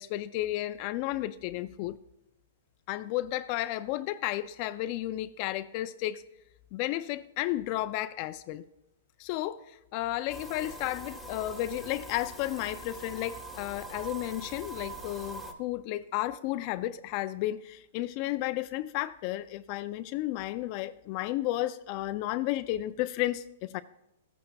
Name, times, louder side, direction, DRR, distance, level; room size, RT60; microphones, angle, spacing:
voice 1, 0.0-2.0 2.9-6.2 6.7-8.7 9.2-23.8, left 15 dB, 40° left, 0.3 m, -33 dB
sound 1, 10.3-15.5, right 2 dB, ahead, 1.0 m, -43 dB
15.0 x 8.7 x 2.3 m
hypercardioid pair, 140°, 0 cm